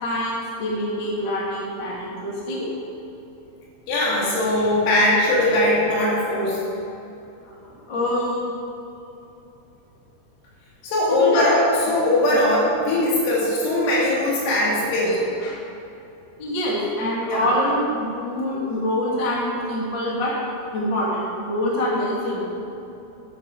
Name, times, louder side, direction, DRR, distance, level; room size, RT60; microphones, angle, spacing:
voice 1, 0.0-2.7 7.4-8.6 11.1-11.5 15.1-15.6 16.4-20.3 20.7-22.5, left 1 dB, 40° left, -5 dB, 1.6 m, -25 dB
voice 2, 3.9-6.6 10.8-15.2 17.3-17.5, left 1 dB, 80° left, -6 dB, 5.4 m, -20 dB
12.0 x 11.0 x 4.1 m, 2.9 s
omnidirectional pair, 6.0 m